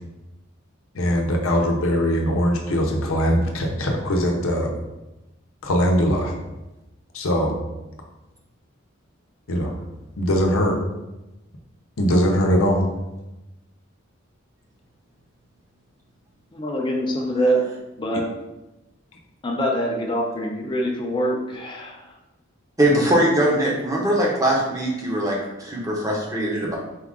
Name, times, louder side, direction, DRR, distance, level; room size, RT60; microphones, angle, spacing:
voice 1, 0.9-4.7 5.6-6.3 7.1-7.5 9.5-9.7 10.2-10.8 12.0-12.9 18.1-18.2, equal, 85° left, 1 dB, 0.7 m, -21 dB
voice 2, 16.5-17.6 18.0-18.3 19.4-22.0, equal, 25° left, 0 dB, 0.5 m, -24 dB
voice 3, 22.8-26.7, right 1 dB, 15° right, -3 dB, 0.8 m, -21 dB
4.6 x 2.5 x 3.6 m, 0.98 s
head